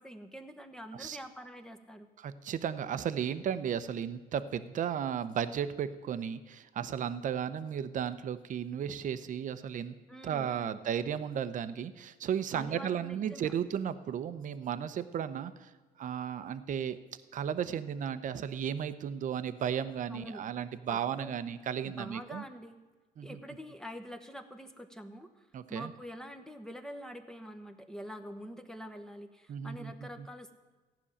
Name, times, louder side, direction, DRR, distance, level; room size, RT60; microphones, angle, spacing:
voice 1, 0.0-2.1 10.1-10.8 12.5-13.5 20.1-20.4 20.9-21.4 21.8-22.8 23.2-30.6, equal, 5° left, 6 dB, 1.0 m, -46 dB
voice 2, 2.2-10.0 10.2-15.7 16.0-17.0 17.3-22.4 23.2-23.4 25.5-25.9 29.5-29.9 30.2-30.3, right 8 dB, 50° right, 12 dB, 0.8 m, -34 dB
15.0 x 6.2 x 9.9 m, 1.3 s
cardioid pair, 110°, 17 cm